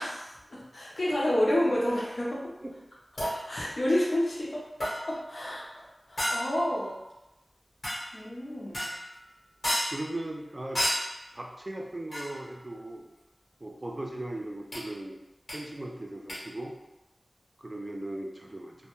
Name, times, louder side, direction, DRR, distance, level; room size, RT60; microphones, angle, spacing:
voice 1, 0.0-2.4 3.5-4.6 5.1-7.0 8.1-8.9, left 1 dB, 60° left, -5 dB, 0.6 m, -29 dB
sound 1, 3.2-3.5 4.8-5.2 6.2-6.7 7.8-8.2 8.7-9.1 9.6-10.1 10.7-11.2 12.1-12.5 14.7-14.8 15.5-15.6 16.3-16.4, equal, 75° left, 1.0 m, -31 dB
voice 2, 9.9-10.8 11.3-13.1 13.6-15.2 15.5-16.7 17.6-18.8, right 1 dB, 30° right, 0 dB, 0.3 m, -38 dB
2.2 x 2.1 x 2.9 m, 0.97 s
wide cardioid pair, 80°, 0 cm